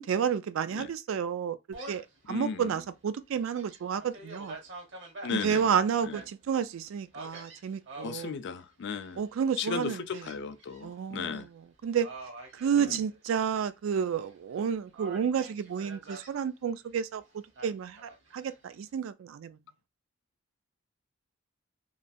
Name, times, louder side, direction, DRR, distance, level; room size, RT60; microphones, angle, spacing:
voice 1, 0.0-1.6 1.9-4.6 5.3-8.4 9.2-10.3 10.8-12.1 12.5-19.6, right 7 dB, 80° right, 0.3 m, -31 dB
Gull seagull, 1.7-2.2 2.7-2.8 3.3-6.2 7.1-8.3 8.8-9.3 10.1-10.8 11.2-11.4 12.0-13.5 13.9-14.6 14.9-16.3 17.6-18.6, right 2 dB, 65° right, 1.0 m, -46 dB
voice 2, 2.3-2.7 5.2-5.6 6.1-6.2 8.0-9.2 9.6-11.5 12.8-13.0, left 6 dB, 60° left, 0.4 m, -35 dB
3.1 x 2.3 x 2.6 m
head